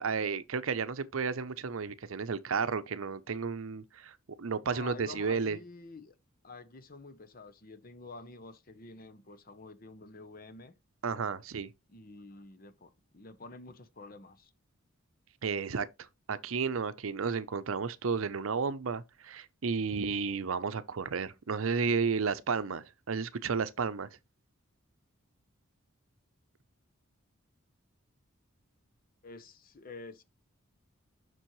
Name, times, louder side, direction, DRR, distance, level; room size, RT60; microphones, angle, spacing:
voice 1, 0.0-5.6 11.0-11.7 15.4-15.9 16.3-24.1, right 5 dB, 75° right, 0.6 m, -32 dB
voice 2, 4.6-6.2 6.4-10.7 11.9-14.5 29.2-30.2, left 3 dB, 45° left, 0.8 m, -49 dB
7.3 x 6.1 x 3.1 m
head